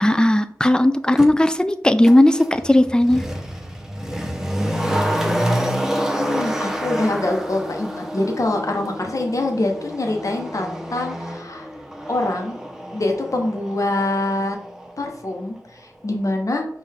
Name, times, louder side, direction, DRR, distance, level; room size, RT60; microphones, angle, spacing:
voice 1, 0.0-3.2, left 1 dB, 15° left, 11 dB, 0.4 m, -16 dB
Motor vehicle (road), 1.2-1.3 2.0-14.9 15.2-15.3, equal, 10° right, 0.8 m, -28 dB
voice 2, 6.2-11.7 12.1-12.6 12.9-14.6 15.0-16.7, left 2 dB, 55° left, 2 dB, 1.0 m, -24 dB
5.5 x 2.6 x 3.5 m, 0.66 s
cardioid pair, 45°, 7 cm